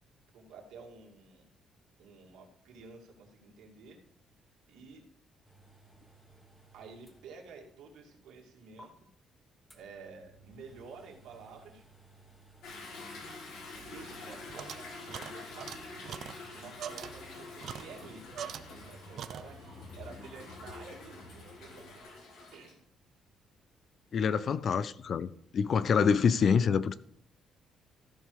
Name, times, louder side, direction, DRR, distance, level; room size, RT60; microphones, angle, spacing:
voice 1, 0.3-1.5 2.0-4.0 4.7-5.0 6.7-9.1 9.7-11.8 13.1-13.4 13.8-16.2 16.5-18.3 18.7-19.6 19.9-22.1 22.5-22.8, right 4 dB, 85° right, 2.4 m, -51 dB
sound 1, 5.4-7.8 8.1-8.2 8.8-8.9 9.7-22.0, right 2 dB, 10° left, 1.4 m, -59 dB
Toilet flush / Drip / Trickle dribble, 12.6-22.7, left 3 dB, 80° left, 2.8 m, -47 dB
sound 2, 13.7-18.9 19.2-19.8, right 9 dB, 55° right, 0.5 m, -44 dB
voice 2, 24.1-26.9, left 6 dB, 40° left, 0.4 m, -26 dB
14.0 x 5.5 x 4.8 m
cardioid pair, 165°, 0 cm